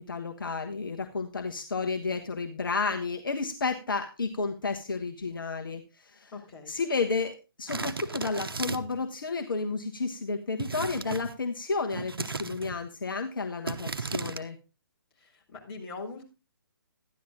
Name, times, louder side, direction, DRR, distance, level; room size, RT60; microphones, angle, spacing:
voice 1, 0.0-6.3 6.7-14.6, left 4 dB, 65° left, 5 dB, 1.4 m, -32 dB
voice 2, 6.3-6.7 15.2-16.2, left 3 dB, 25° left, -2 dB, 4.9 m, -42 dB
sound 1, 7.7-9.0 10.6-11.4 11.9-12.8 13.7-14.4, right 4 dB, 75° right, 1.0 m, -35 dB
13.0 x 11.0 x 3.8 m, 0.28 s
figure-of-eight pair, 135°, 12 cm